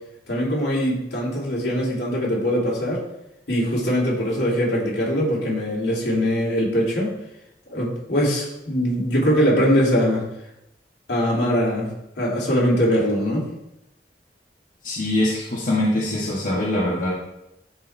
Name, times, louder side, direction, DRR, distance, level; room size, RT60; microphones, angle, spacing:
voice 1, 0.3-3.0 3.5-7.1 7.7-10.2 11.1-11.9 12.2-13.4, equal, 70° left, -5 dB, 2.9 m, -22 dB
voice 2, 14.8-17.1, left 1 dB, 50° left, -7 dB, 1.6 m, -23 dB
12.0 x 4.4 x 3.4 m, 0.87 s
head